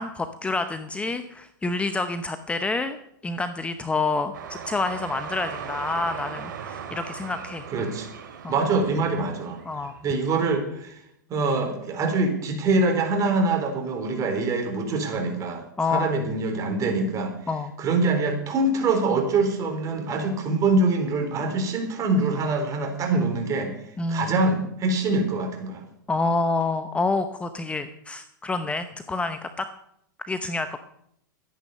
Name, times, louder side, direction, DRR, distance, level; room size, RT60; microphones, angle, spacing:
voice 1, 0.0-3.0 3.2-7.6 8.4-8.5 9.7-9.9 15.8-16.1 17.5-17.7 24.0-24.3 26.1-29.7 30.2-30.8, left 3 dB, 10° left, 9 dB, 0.9 m, -28 dB
sound 1, 4.3-10.6, right 7 dB, 75° right, 2.6 m, -38 dB
voice 2, 7.7-8.1 8.5-9.6 10.0-11.0 11.3-17.3 17.8-23.7 24.1-25.8, right 3 dB, 30° right, 4 dB, 4.0 m, -24 dB
13.5 x 10.0 x 6.7 m, 0.74 s
hypercardioid pair, 115°, 11 cm